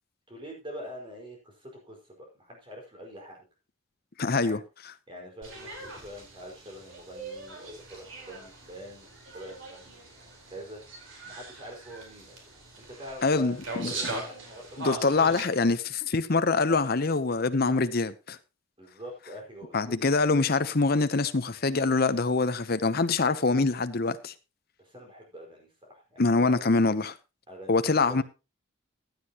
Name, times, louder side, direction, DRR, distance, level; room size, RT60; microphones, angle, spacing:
voice 1, 0.3-3.4 4.4-4.6 5.1-11.0 11.2-12.4 12.7-14.8 18.8-20.0 24.8-26.6 27.5-28.2, equal, 25° right, 4.9 m, -45 dB
voice 2, 4.2-4.6 13.2-13.9 14.8-18.4 19.7-24.3 26.2-27.1 27.7-28.2, left 3 dB, 45° left, 0.8 m, -24 dB
sound 1, 5.4-15.5, right 2 dB, 65° right, 4.3 m, -41 dB
15.5 x 9.9 x 3.0 m
head